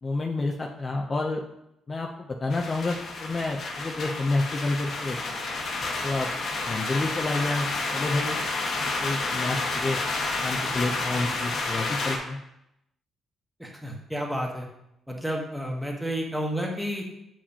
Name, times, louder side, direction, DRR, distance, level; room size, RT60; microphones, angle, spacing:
voice 1, 0.0-1.4 1.9-5.2 6.0-6.3 6.7-7.7 7.9-8.4 8.8-10.0 10.4-12.4, left 2 dB, 30° left, 1 dB, 0.6 m, -29 dB
sound 1, 2.5-12.2, left 3 dB, 60° left, 1.3 m, -30 dB
voice 2, 13.6-14.7 15.1-17.0, equal, 5° right, 0 dB, 1.3 m, -31 dB
7.1 x 4.9 x 2.8 m, 0.83 s
cardioid pair, 90°, 0 cm